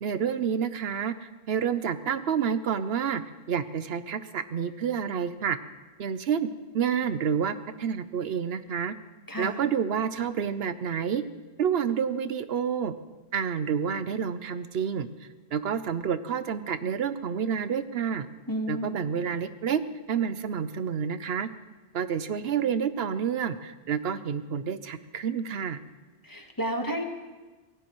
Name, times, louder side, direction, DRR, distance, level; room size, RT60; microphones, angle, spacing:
voice 1, 0.0-3.2 3.5-5.6 6.0-6.5 6.7-8.9 9.4-11.2 11.6-12.9 13.3-15.1 15.5-18.3 18.7-19.8 20.1-21.5 21.9-25.8, right 7 dB, 75° right, 12 dB, 0.9 m, -29 dB
voice 2, 9.3-9.6 18.5-19.0 26.2-27.1, equal, 20° left, 3 dB, 1.3 m, -31 dB
25.0 x 17.0 x 3.1 m, 1.3 s
omnidirectional pair, 1.0 m